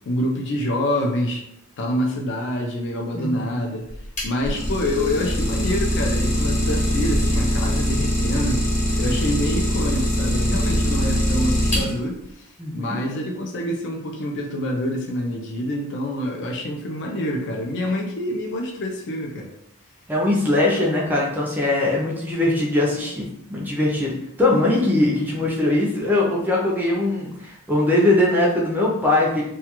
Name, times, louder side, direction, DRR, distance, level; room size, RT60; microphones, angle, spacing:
voice 1, 0.1-1.5 1.8-3.9 4.2-8.6 9.0-19.5, left 1 dB, 55° left, 0 dB, 0.4 m, -26 dB
voice 2, 3.1-3.5 12.6-13.0 20.1-29.4, left 2 dB, 10° right, -3 dB, 0.4 m, -21 dB
Idling, 3.9-12.2, equal, 30° left, 1.0 m, -22 dB
2.3 x 2.2 x 2.9 m, 0.78 s
head